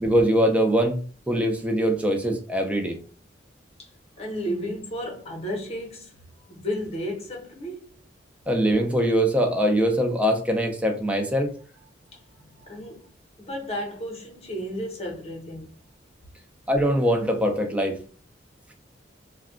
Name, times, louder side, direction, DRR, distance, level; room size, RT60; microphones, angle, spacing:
voice 1, 0.0-1.0 1.3-3.0 8.5-11.6 16.7-18.0, equal, 5° right, 0.5 m, -22 dB
voice 2, 4.2-6.1 6.5-7.9 12.1-13.1 13.4-15.8, equal, 35° left, 0.9 m, -33 dB
2.3 x 2.2 x 3.7 m
head